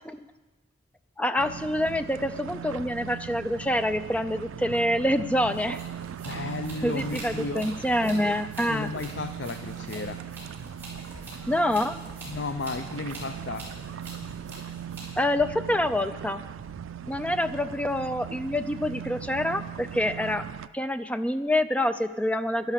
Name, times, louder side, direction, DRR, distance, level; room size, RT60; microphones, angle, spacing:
voice 1, 1.2-5.8 6.8-8.9 11.5-12.0 15.2-16.4 17.1-20.5 20.7-22.7, left 1 dB, 5° left, 11 dB, 0.4 m, -26 dB
sound 1, 1.4-20.7, right 8 dB, 80° right, 0.4 m, -39 dB
sound 2, 5.4-15.2, right 1 dB, 10° right, 4.4 m, -45 dB
voice 2, 6.2-7.6 8.7-10.2 12.3-13.6, left 3 dB, 60° left, 8 dB, 0.5 m, -33 dB
11.5 x 11.5 x 6.4 m, 1.2 s
head